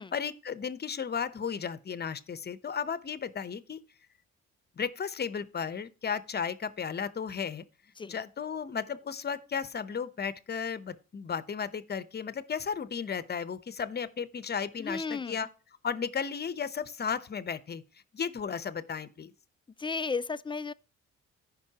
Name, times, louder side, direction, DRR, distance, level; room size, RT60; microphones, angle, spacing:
voice 1, 0.0-3.8 4.8-7.6 8.1-15.5 15.8-17.8 18.1-19.3, left 6 dB, 35° left, 0.8 m, -34 dB
voice 2, 14.8-15.4 19.8-20.7, left 4 dB, 15° left, 0.4 m, -34 dB
14.5 x 5.4 x 2.9 m
cardioid pair, 90°, 30 cm